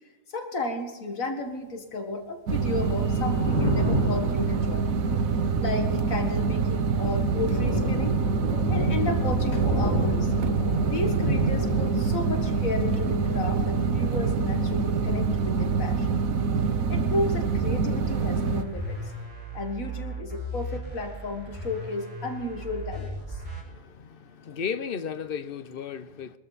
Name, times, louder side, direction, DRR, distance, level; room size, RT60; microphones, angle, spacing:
voice 1, 0.3-4.9 5.6-8.2 8.7-10.3 10.9-16.2 16.9-19.0 19.5-23.4, left 2 dB, 80° left, 2.1 m, -33 dB
sound 1, 2.5-18.6, right 5 dB, 85° right, 1.4 m, -25 dB
Thunder, 3.0-17.4 17.7-18.9, equal, 20° left, 5.3 m, -33 dB
sound 2, 18.0-23.6, equal, 25° right, 6.0 m, -37 dB
voice 2, 23.6-26.4, left 7 dB, 50° left, 0.8 m, -35 dB
22.5 x 13.0 x 4.1 m
omnidirectional pair, 1.4 m